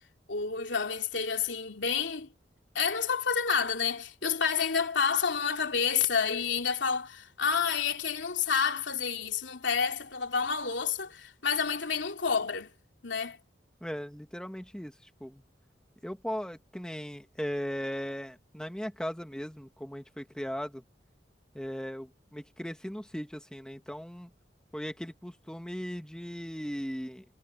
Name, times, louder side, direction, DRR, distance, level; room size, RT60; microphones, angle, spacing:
voice 1, 0.3-2.3 2.7-12.7 13.0-13.4, left 6 dB, 85° left, 3.0 m, -29 dB
voice 2, 13.8-15.4 16.0-20.8 21.5-24.3 24.7-27.2, equal, 5° left, 1.5 m, -38 dB
head